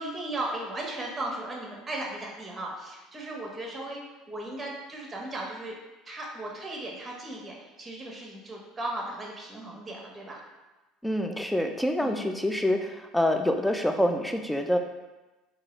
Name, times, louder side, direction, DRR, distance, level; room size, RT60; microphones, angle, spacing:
voice 1, 0.0-4.0 4.3-5.8 6.1-10.4 12.0-12.3, right 1 dB, 20° right, -1 dB, 1.0 m, -36 dB
voice 2, 11.0-14.8, left 1 dB, 5° left, 5 dB, 0.4 m, -26 dB
3.8 x 2.8 x 3.1 m, 1.1 s
supercardioid pair, 105°, 0 cm